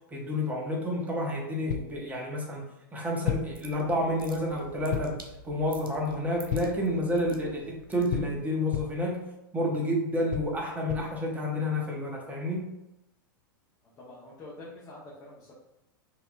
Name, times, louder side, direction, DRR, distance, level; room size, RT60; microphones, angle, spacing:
voice 1, 0.1-2.6 2.9-9.2 9.5-12.7, left 1 dB, 15° right, -1 dB, 1.0 m, -30 dB
sound 1, 1.7-2.0 3.3-3.6 4.9-5.3 6.5-6.9 8.1-9.1 10.3-11.2, left 10 dB, 55° left, 0.4 m, -33 dB
sound 2, 3.1-8.5, right 1 dB, 85° right, 0.6 m, -50 dB
voice 2, 13.8-15.6, left 2 dB, 25° left, -7 dB, 1.0 m, -47 dB
4.3 x 2.7 x 2.6 m, 0.92 s
figure-of-eight pair, 95°, 11 cm